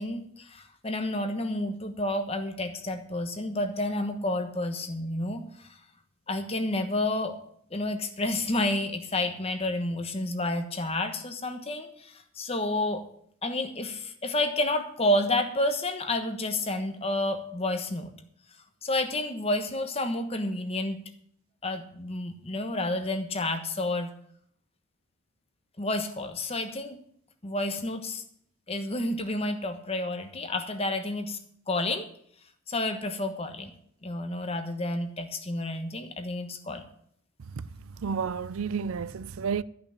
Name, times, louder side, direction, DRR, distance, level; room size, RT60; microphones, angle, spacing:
voice 1, 0.0-5.8 6.3-7.4 7.7-13.0 13.4-18.1 18.8-21.0 21.6-24.1 25.8-27.0 27.4-28.2 28.7-31.4 31.7-32.1 32.7-33.7 34.0-36.8, left 1 dB, 30° left, 1.2 m, -30 dB
voice 2, 38.0-39.6, right 6 dB, 75° right, 0.5 m, -31 dB
13.0 x 6.0 x 8.6 m
head